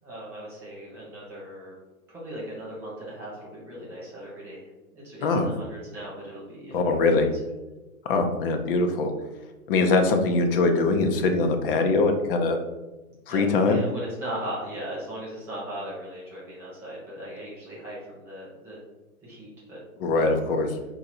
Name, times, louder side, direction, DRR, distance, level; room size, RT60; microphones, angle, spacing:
voice 1, 0.0-1.8 2.1-7.4 13.3-18.8 19.2-19.8 20.1-20.5, equal, 5° right, -7 dB, 0.4 m, -38 dB
voice 2, 6.7-7.3 8.1-9.1 9.7-12.6 13.3-13.8 20.0-20.7, left 3 dB, 40° left, 5 dB, 0.7 m, -22 dB
4.5 x 2.7 x 4.3 m, 1.1 s
hypercardioid pair, 125°, 43 cm